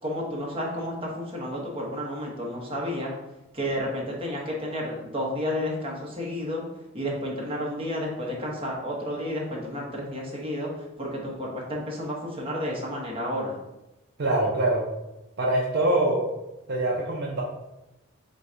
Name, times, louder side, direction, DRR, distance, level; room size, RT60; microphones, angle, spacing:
voice 1, 0.0-3.2 3.5-6.6 6.9-10.7 11.0-13.6, equal, 25° right, -3 dB, 1.0 m, -31 dB
voice 2, 14.2-14.8 15.4-16.2 16.7-17.4, right 1 dB, 55° right, -2 dB, 0.6 m, -24 dB
3.8 x 2.5 x 4.4 m, 0.97 s
head